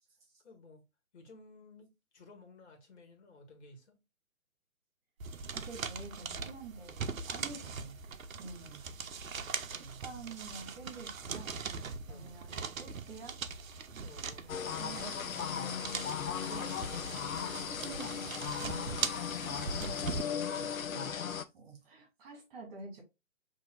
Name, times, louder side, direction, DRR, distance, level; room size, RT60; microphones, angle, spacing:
voice 1, 0.4-0.8 1.1-4.0 9.7-10.3 12.1-12.3 14.0-14.7, left 1 dB, 55° left, 1.5 m, -55 dB
sound 1, 5.2-20.2, right 5 dB, 80° right, 0.7 m, -41 dB
voice 2, 5.5-8.0 8.4-11.6 12.1-13.4 13.9-14.5 14.7-15.8 16.2-16.8 17.0-19.0 19.4-21.2 21.5-23.0, right 4 dB, 25° right, 2.2 m, -49 dB
sound 2, 14.5-21.5, left 7 dB, 80° left, 0.6 m, -37 dB
5.5 x 2.8 x 2.3 m
figure-of-eight pair, 140°, 40 cm